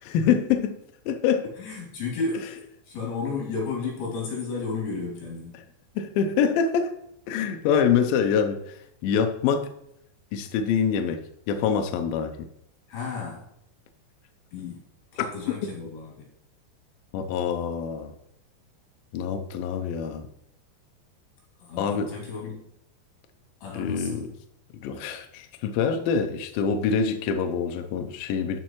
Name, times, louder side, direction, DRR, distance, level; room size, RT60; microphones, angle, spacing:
voice 1, 0.1-0.8 1.1-1.5 6.0-6.9 7.3-9.7 10.3-11.2 11.5-12.3 17.1-18.1 19.1-20.3 21.8-22.1 23.7-24.3 24.8-28.6, left 7 dB, 90° left, 6 dB, 2.0 m, -25 dB
voice 2, 1.6-5.6 12.9-13.5 14.5-14.8 15.1-16.1 21.6-22.6 23.6-24.2, left 4 dB, 65° left, -3 dB, 4.7 m, -33 dB
12.0 x 5.7 x 3.1 m, 0.76 s
omnidirectional pair, 5.0 m